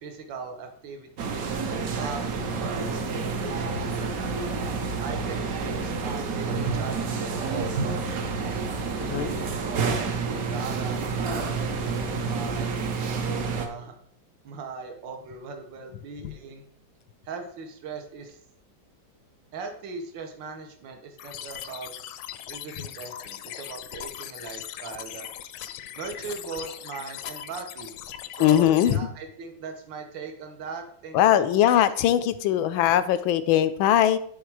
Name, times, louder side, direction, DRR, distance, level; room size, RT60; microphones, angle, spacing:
voice 1, 0.0-1.5 2.0-4.0 5.0-8.3 9.0-11.1 11.7-12.8 13.5-13.9 14.4-16.7 17.3-18.4 19.5-21.9 22.5-25.3 26.0-27.9 28.3-31.7, right 4 dB, 70° right, 4 dB, 1.7 m, -39 dB
sound 1, 1.2-13.7, right 4 dB, 55° right, 1.1 m, -29 dB
voice 2, 9.0-9.3 16.2-16.3 28.4-29.1 31.1-34.2, left 11 dB, 90° left, 12 dB, 1.4 m, -21 dB
sound 2, 21.2-29.0, left 11 dB, 75° left, 1.2 m, -39 dB
10.5 x 3.6 x 4.7 m, 0.63 s
omnidirectional pair, 2.1 m